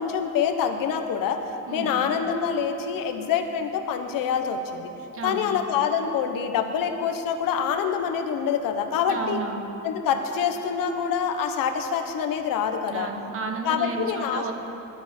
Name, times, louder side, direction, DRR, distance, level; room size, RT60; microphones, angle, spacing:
voice 1, 0.0-1.4 1.7-4.9 5.2-9.4 9.8-13.1 13.6-14.4, left 7 dB, 80° left, 6 dB, 1.3 m, -26 dB
voice 2, 5.1-5.5 9.1-9.6 12.9-14.5, right 4 dB, 40° right, 4 dB, 1.4 m, -32 dB
20.5 x 12.0 x 4.5 m, 3.0 s
cardioid pair, 160°, 33 cm